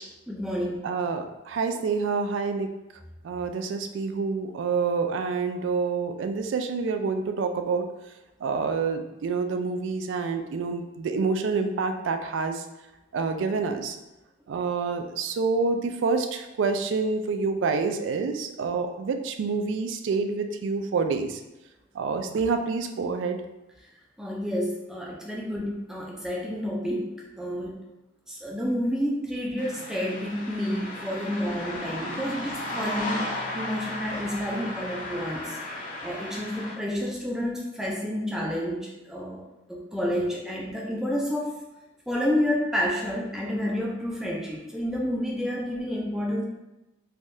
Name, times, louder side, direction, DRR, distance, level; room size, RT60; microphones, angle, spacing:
voice 1, 0.3-0.9 24.2-27.1 27.4-27.7 28.3-33.3 33.5-35.6 36.0-39.4 39.7-41.5 42.1-46.4, equal, 5° right, -3 dB, 0.4 m, -29 dB
voice 2, 0.8-2.7 3.2-7.9 8.4-12.6 13.1-14.0 14.5-21.4 21.9-23.4, right 4 dB, 80° right, 7 dB, 0.3 m, -27 dB
sound 1, 29.6-36.8, left 1 dB, 45° left, 0.6 m, -35 dB
3.4 x 2.3 x 2.6 m, 0.98 s
head